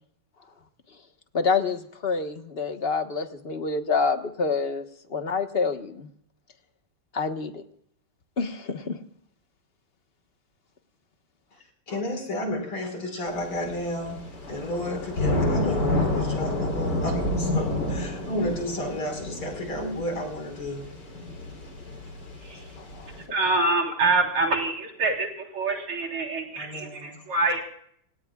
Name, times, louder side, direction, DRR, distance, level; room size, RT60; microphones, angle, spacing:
voice 1, 1.3-4.8 5.1-6.1 7.1-7.6 8.4-9.0 11.9-12.0 22.8-23.1, left 4 dB, 30° left, 6 dB, 1.4 m, -27 dB
voice 2, 11.9-14.2 14.5-20.9 22.5-22.6 26.6-27.2, left 1 dB, 80° left, 3 dB, 6.1 m, -32 dB
Thunder / Rain, 13.3-23.2, left 1 dB, 50° left, 4.5 m, -30 dB
voice 3, 23.3-25.3 25.5-27.6, right 3 dB, 80° right, 1 dB, 4.7 m, -25 dB
29.5 x 18.0 x 2.4 m, 0.65 s
omnidirectional pair, 2.3 m